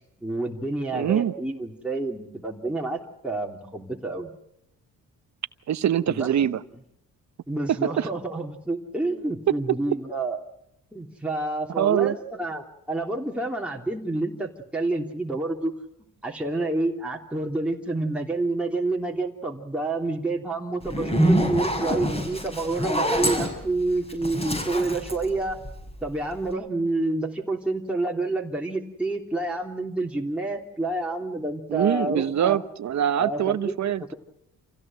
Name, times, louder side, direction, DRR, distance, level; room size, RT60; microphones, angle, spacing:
voice 1, 0.0-4.3 6.1-6.3 7.5-10.4 10.9-15.7 16.2-25.6 26.0-32.6 33.2-33.8, right 2 dB, 5° right, -1 dB, 3.2 m, -28 dB
voice 2, 0.9-1.3 5.7-6.6 7.7-8.1 11.8-12.2 31.7-34.1, right 10 dB, 55° right, 14 dB, 1.1 m, -24 dB
Zipper (clothing), 20.8-26.1, equal, 20° left, 6.6 m, -25 dB
27.5 x 16.5 x 7.7 m, 0.81 s
supercardioid pair, 70°, 32 cm